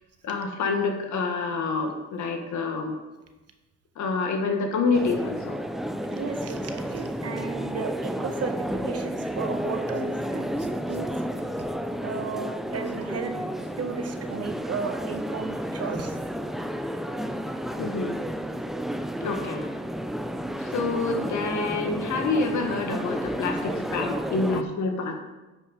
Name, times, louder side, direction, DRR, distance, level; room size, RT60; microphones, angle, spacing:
voice 1, 0.2-3.0 3.9-5.6 17.8-18.2 19.2-19.7 20.6-25.2, left 4 dB, 70° left, 4 dB, 1.7 m, -27 dB
sound 1, 4.9-24.6, equal, ahead, 0.5 m, -31 dB
voice 2, 6.1-11.1 12.0-16.2 19.2-19.3, right 5 dB, 55° right, 6 dB, 1.3 m, -34 dB
10.5 x 6.0 x 4.9 m, 1.1 s
cardioid pair, 90°, 30 cm